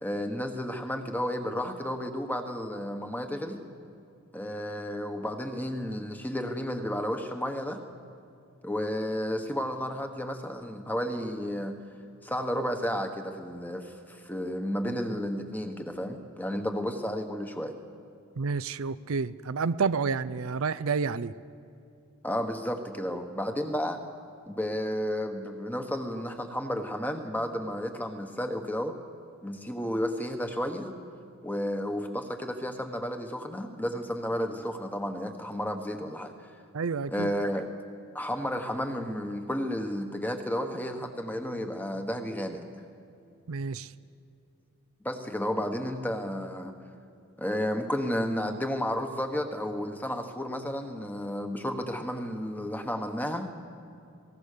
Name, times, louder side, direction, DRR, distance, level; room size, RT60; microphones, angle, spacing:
voice 1, 0.0-3.6 4.3-7.8 8.6-11.8 12.2-17.8 22.2-24.0 24.5-28.9 29.4-30.9 31.4-36.3 37.1-37.7 38.1-42.7 45.0-46.7 47.4-53.5, equal, 10° left, 6 dB, 1.3 m, -32 dB
voice 2, 18.4-21.3 36.7-37.3 43.5-43.9, right 5 dB, 70° right, 14 dB, 0.5 m, -29 dB
27.5 x 18.5 x 6.8 m, 2.6 s
head